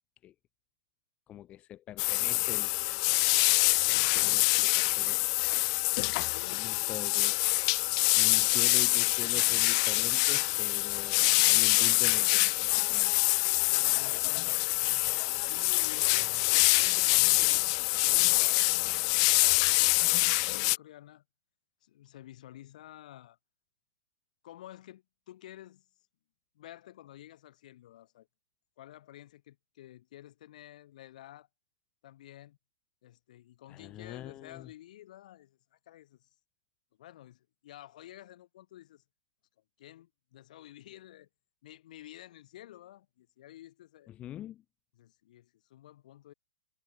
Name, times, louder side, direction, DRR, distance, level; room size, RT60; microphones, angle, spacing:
voice 1, 1.3-2.7 3.9-5.2 6.5-7.3 8.1-13.1 33.7-34.7 44.1-44.6, left 12 dB, 25° left, 1.5 m, -44 dB
sound 1, 2.0-20.8, left 28 dB, 40° left, 0.4 m, -25 dB
voice 2, 3.7-4.4 6.2-7.0 8.5-8.7 13.6-15.0 15.4-17.6 18.0-20.1 20.4-21.2 21.8-23.4 24.4-26.1 26.5-28.3 28.8-31.5 32.0-32.6 33.0-36.3 37.0-39.0 39.8-41.3 41.6-44.1 44.9-46.3, left 13 dB, 55° left, 6.7 m, -51 dB
hypercardioid pair, 130°, 5 cm